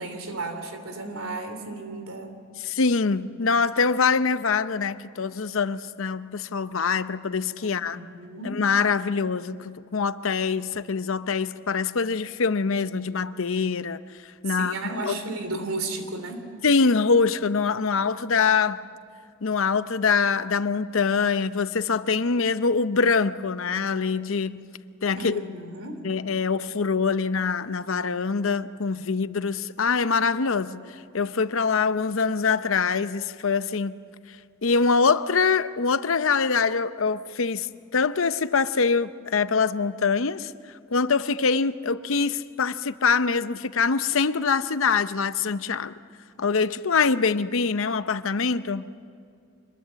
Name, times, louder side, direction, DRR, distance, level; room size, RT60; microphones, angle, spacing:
voice 1, 0.0-2.3 7.6-8.6 14.5-16.5 25.1-26.0, right 2 dB, 85° right, 2.9 m, -34 dB
voice 2, 2.6-8.0 8.4-14.0 14.4-14.7 15.0-15.2 16.6-18.8 19.4-24.6 25.0-25.4 26.0-30.8 31.1-33.9 34.6-40.5 40.9-45.9 46.4-48.8, left 5 dB, 70° left, 0.7 m, -24 dB
26.0 x 21.5 x 7.6 m
head